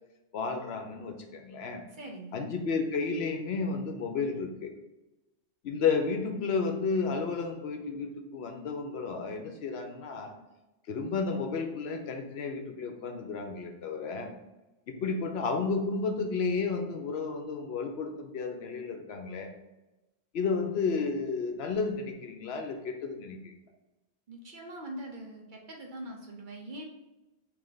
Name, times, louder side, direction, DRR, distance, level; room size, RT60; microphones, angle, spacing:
voice 1, 0.3-1.8 2.3-4.7 5.6-10.3 10.9-14.3 14.9-19.5 20.3-23.5, left 4 dB, 70° left, 4 dB, 0.8 m, -32 dB
voice 2, 1.9-2.5 24.3-26.8, right 1 dB, 55° right, 1 dB, 0.7 m, -43 dB
3.2 x 2.8 x 3.8 m, 1.0 s
omnidirectional pair, 1.1 m